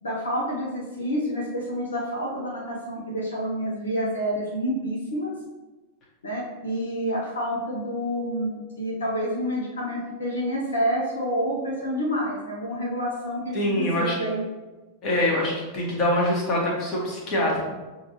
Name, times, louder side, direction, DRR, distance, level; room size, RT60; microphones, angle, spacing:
voice 1, 0.0-5.3 6.2-14.4, equal, 70° left, -4 dB, 1.0 m, -28 dB
voice 2, 13.5-14.2 15.0-17.6, left 1 dB, 30° left, -3 dB, 1.4 m, -24 dB
6.6 x 2.7 x 3.0 m, 1.2 s
figure-of-eight pair, 90°, 0 cm